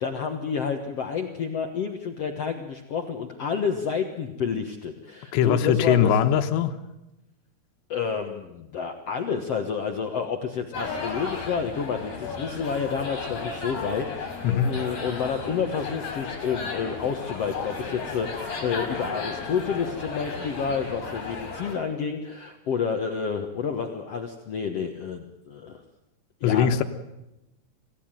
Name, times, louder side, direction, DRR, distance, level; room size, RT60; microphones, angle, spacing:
voice 1, 0.0-6.1 7.9-25.8 26.4-26.8, left 6 dB, 75° left, 5 dB, 1.4 m, -29 dB
voice 2, 5.3-6.8 14.4-14.7 26.4-26.8, left 8 dB, 90° left, 8 dB, 3.4 m, -21 dB
sound 1, 10.7-21.8, left 4 dB, 50° left, 5.9 m, -34 dB
27.0 x 16.5 x 9.1 m, 0.93 s
omnidirectional pair, 4.9 m